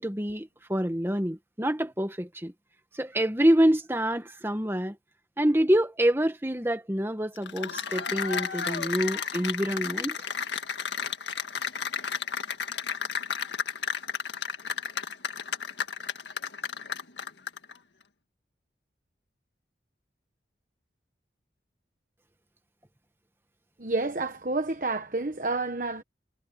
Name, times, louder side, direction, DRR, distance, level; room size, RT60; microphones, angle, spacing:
voice 1, 0.0-2.5 2.9-5.0 5.4-10.2, equal, 15° right, 1.7 m, -26 dB
Cheering / Applause, 7.4-17.7, left 6 dB, 85° left, 1.8 m, -32 dB
voice 2, 23.8-26.0, right 3 dB, 45° right, 1.2 m, -29 dB
head